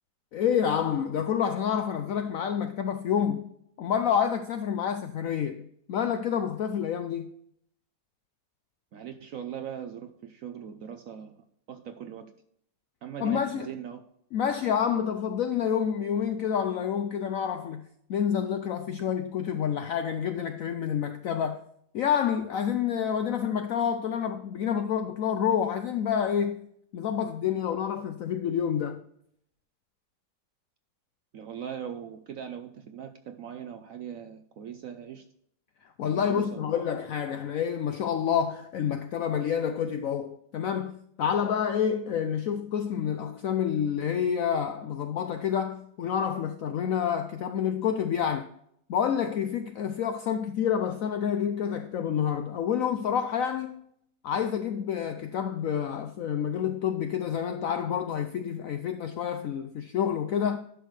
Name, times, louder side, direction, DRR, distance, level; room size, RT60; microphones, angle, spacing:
voice 1, 0.3-3.5 3.8-7.3 13.2-13.7 14.3-21.6 21.9-26.7 26.9-29.0 36.0-48.5 48.9-53.8 54.2-60.6, left 8 dB, 75° left, 0.7 m, -28 dB
voice 2, 8.9-11.4 11.7-12.3 13.0-14.0 19.0-19.1 31.3-35.2 36.1-36.6, right 8 dB, 65° right, 0.8 m, -40 dB
11.0 x 6.4 x 3.2 m
omnidirectional pair, 2.0 m